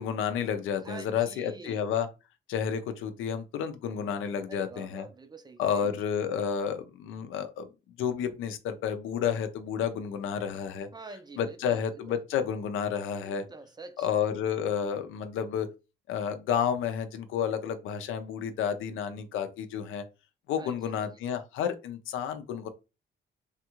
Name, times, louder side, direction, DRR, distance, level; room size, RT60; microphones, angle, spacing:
voice 1, 0.0-2.1 2.5-5.0 5.6-7.7 8.0-10.9 11.4-13.4 14.0-15.7 16.1-20.0 20.5-22.7, left 8 dB, 85° left, 0.6 m, -31 dB
voice 2, 0.8-1.8 4.5-5.9 10.9-12.2 13.2-14.1 20.6-21.2, right 3 dB, 20° right, 0.5 m, -46 dB
3.4 x 2.4 x 2.9 m
cardioid pair, 90°, 20 cm